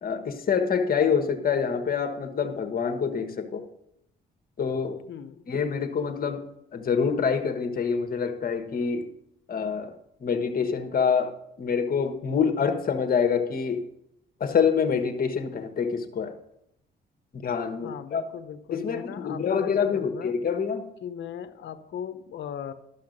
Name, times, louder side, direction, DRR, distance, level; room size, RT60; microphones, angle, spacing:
voice 1, 0.0-3.7 4.6-5.0 5.5-6.4 6.7-9.1 9.5-13.9 14.4-16.4 17.3-18.2 18.7-20.9, left 6 dB, 50° left, 8 dB, 1.3 m, -26 dB
voice 2, 5.1-5.4 17.8-20.4 21.0-22.7, left 9 dB, 65° left, 10 dB, 0.9 m, -38 dB
12.5 x 5.7 x 6.6 m, 0.80 s
cardioid pair, 90°, 20 cm